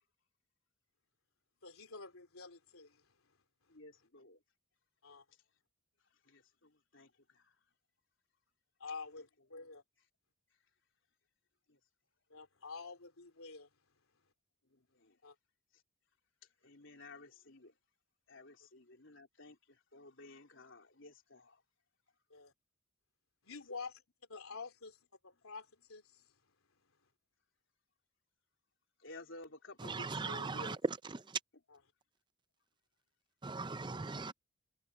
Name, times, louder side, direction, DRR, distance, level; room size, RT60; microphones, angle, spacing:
voice 1, 1.6-3.1 5.0-5.2 8.8-9.8 12.3-13.7 15.2-15.4 22.3-22.5 23.4-24.0 24.3-25.0 25.2-26.3, left 4 dB, 85° left, 3.3 m, -48 dB
voice 2, 3.7-4.4 6.3-7.5 11.7-11.8 14.7-15.2 16.6-17.7 18.3-21.6 29.0-30.8 33.9-34.3, left 2 dB, 65° left, 3.7 m, -54 dB
voice 3, 29.8-31.4 33.4-34.3, right 4 dB, 20° right, 0.5 m, -38 dB
head